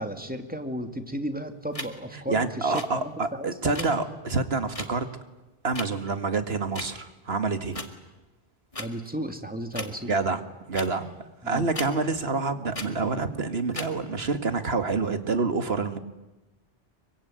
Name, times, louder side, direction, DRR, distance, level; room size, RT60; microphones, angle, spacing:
voice 1, 0.0-3.9 8.8-10.1 11.4-11.7, right 1 dB, 10° right, 7 dB, 2.5 m, -34 dB
sound 1, 1.7-1.9 2.7-2.9 3.7-3.9 4.7-4.9 5.7-5.9 6.7-6.9 7.7-7.9 8.7-8.9 9.7-9.9 10.7-10.9 11.7-11.9 12.7-12.9 13.7-13.9, left 2 dB, 30° left, 2.2 m, -35 dB
voice 2, 2.3-5.1 5.6-7.8 10.0-10.4 10.7-11.1 11.4-16.0, right 4 dB, 70° right, 10 dB, 2.1 m, -27 dB
25.0 x 24.0 x 9.4 m, 1.1 s
omnidirectional pair, 1.1 m